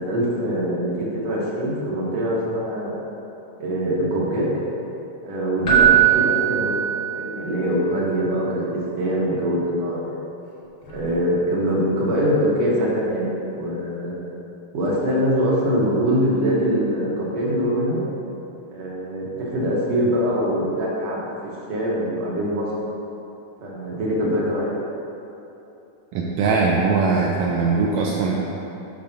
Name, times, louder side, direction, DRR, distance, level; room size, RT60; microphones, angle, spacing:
voice 1, 0.0-2.9 3.6-4.5 5.2-10.2 10.9-14.1 14.7-18.0 18.7-21.2 21.7-22.7 23.6-24.8, equal, 60° right, -5 dB, 2.4 m, -23 dB
Keyboard (musical), 5.6-7.6 10.9-11.0, right 11 dB, 50° left, 0.9 m, -19 dB
voice 2, 26.1-28.3, right 4 dB, 80° right, -2 dB, 1.8 m, -20 dB
10.5 x 6.9 x 2.7 m, 2.9 s
omnidirectional pair, 3.5 m